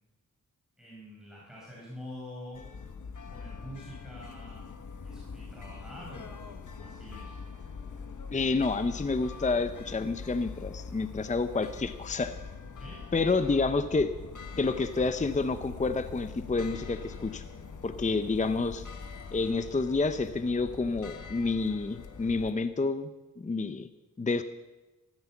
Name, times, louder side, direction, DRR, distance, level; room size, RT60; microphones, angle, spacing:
voice 1, 0.8-2.6 3.3-6.5 6.7-7.3 12.7-13.0 13.3-13.6, left 1 dB, ahead, -6 dB, 5.1 m, -46 dB
sound 1, 2.5-22.5, left 5 dB, 70° left, 1.3 m, -43 dB
voice 2, 8.3-12.3 13.1-14.1 14.6-17.4 17.8-18.8 19.3-23.1 23.4-23.9 24.2-24.4, left 3 dB, 25° left, 10 dB, 0.6 m, -29 dB
14.0 x 13.5 x 7.2 m, 1.1 s
wide cardioid pair, 120°, 32 cm